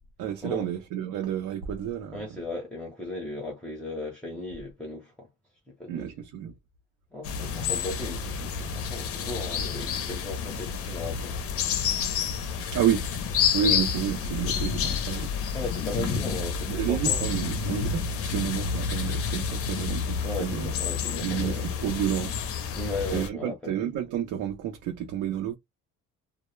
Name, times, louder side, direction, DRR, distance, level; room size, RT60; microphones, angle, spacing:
voice 1, 0.2-2.4 5.9-6.5 12.7-13.1 13.5-15.3 16.0-16.2 16.7-20.7 21.2-22.4 23.1-25.5, right 9 dB, 75° right, 0.6 m, -30 dB
voice 2, 2.1-5.3 5.8-6.1 7.1-11.4 13.6-13.8 15.5-17.2 20.2-21.6 22.7-23.7, left 2 dB, 5° left, 0.6 m, -36 dB
sound 1, 7.2-23.3, left 6 dB, 50° left, 0.5 m, -29 dB
2.1 x 2.0 x 3.0 m
cardioid pair, 165°, 30 cm